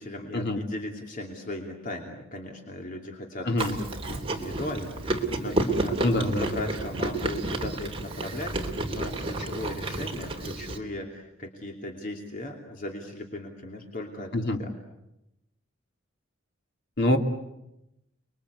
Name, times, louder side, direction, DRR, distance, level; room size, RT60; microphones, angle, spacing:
voice 1, 0.0-6.0 6.4-14.3 14.6-14.7, left 1 dB, 45° left, 2 dB, 2.9 m, -37 dB
Chewing mastication, 3.6-10.8, right 2 dB, 30° right, 3.2 m, -31 dB
voice 2, 6.0-6.5 14.3-14.6 17.0-17.2, left 1 dB, 60° left, 4 dB, 2.7 m, -25 dB
30.0 x 22.5 x 8.3 m, 0.88 s
head